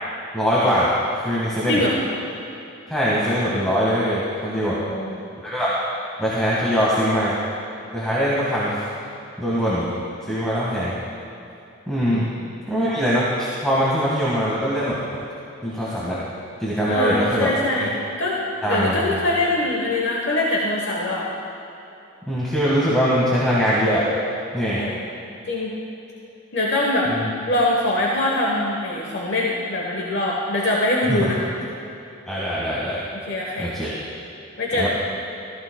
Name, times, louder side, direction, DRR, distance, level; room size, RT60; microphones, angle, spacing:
voice 1, 0.3-1.8 2.9-4.8 5.4-5.7 6.2-7.4 7.9-8.8 9.4-9.9 10.3-10.9 11.9-12.3 12.7-15.0 15.6-16.2 16.6-17.9 18.6-19.1 22.3-24.0 24.5-24.8 27.1-27.3 31.1-31.3 32.3-33.0 33.6-33.9 34.8-34.9, equal, 5° left, -9 dB, 1.6 m, -22 dB
voice 2, 4.7-5.2 12.1-12.3 16.9-17.9 18.2-18.4 18.7-21.3 24.7-25.0 25.5-25.8 26.5-27.1 27.5-31.4 33.3-33.7 34.6-34.9, left 1 dB, 55° left, -3 dB, 1.1 m, -23 dB
15.5 x 14.5 x 2.2 m, 2.8 s
head